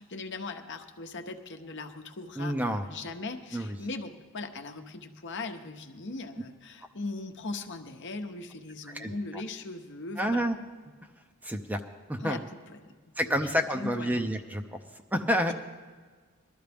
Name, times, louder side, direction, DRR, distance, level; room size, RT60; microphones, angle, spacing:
voice 1, 0.0-10.4 12.2-12.9 13.2-14.2, left 3 dB, 55° left, 6 dB, 0.9 m, -39 dB
voice 2, 2.4-2.8 3.5-3.7 8.9-9.1 10.2-10.6 11.4-11.8 12.1-12.4 13.2-14.6 15.1-15.5, equal, 10° right, 5 dB, 0.6 m, -28 dB
20.5 x 12.5 x 3.5 m, 1.5 s
head